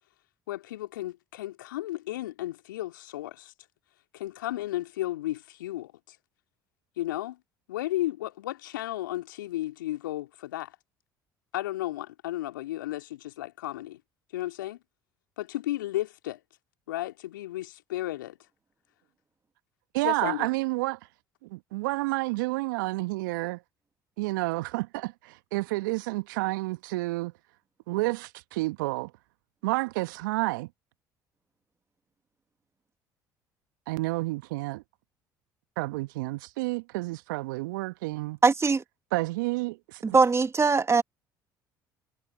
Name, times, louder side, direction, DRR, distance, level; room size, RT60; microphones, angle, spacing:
voice 1, 0.5-3.5 4.1-6.2 7.0-7.4 7.7-10.8 11.5-14.0 14.3-14.8 15.4-16.4 16.9-18.4 20.0-20.5, left 15 dB, 80° left, 2.5 m, -34 dB
voice 2, 19.9-21.0 21.4-23.6 24.2-27.3 27.9-29.1 29.6-30.7 33.9-34.8 35.8-38.4 39.1-40.2, right 22 dB, 70° right, 1.4 m, -30 dB
voice 3, 38.4-38.8 40.0-41.0, right 4 dB, 25° right, 2.3 m, -21 dB
figure-of-eight pair, 55°, 11 cm